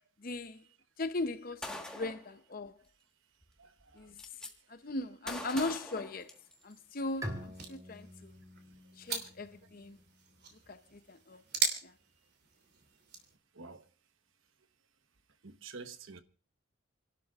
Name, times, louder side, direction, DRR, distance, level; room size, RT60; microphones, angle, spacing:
voice 1, 0.2-0.6 1.0-2.7 4.0-4.2 4.7-6.3 6.6-8.3 9.0-10.0 10.7-11.4 11.8-11.9, left 2 dB, 40° left, 0.7 m, -38 dB
Gunshot gunfire, 1.6-2.3 3.4-3.5 3.8-4.5 5.3-6.8, left 1 dB, 5° left, 1.4 m, -43 dB
voice 2, 3.6-4.1 13.5-13.8 15.4-16.2, right 4 dB, 70° right, 1.0 m, -48 dB
sound 1, 5.6-13.4, right 5 dB, 50° right, 2.9 m, -41 dB
Bowed string instrument, 7.2-10.7, equal, 15° right, 2.5 m, -46 dB
29.5 x 12.0 x 2.4 m
head